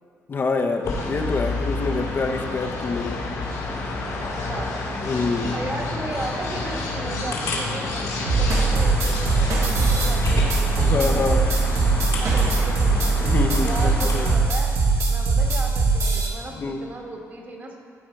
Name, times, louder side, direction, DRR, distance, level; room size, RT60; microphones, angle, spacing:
voice 1, 0.3-3.2 5.0-5.6 10.8-11.4 13.2-14.3 16.5-16.8, left 3 dB, 40° left, 3 dB, 0.7 m, -26 dB
sound 1, 0.8-14.3, left 3 dB, 80° left, 2.1 m, -29 dB
voice 2, 4.2-4.7 5.5-11.2 12.2-13.3 13.6-14.7 15.1-17.8, right 2 dB, 35° right, 1 dB, 1.5 m, -35 dB
sound 2, 8.3-16.3, right 3 dB, 65° right, 1.5 m, -21 dB
14.0 x 5.0 x 4.5 m, 2.3 s
cardioid pair, 105°, 6 cm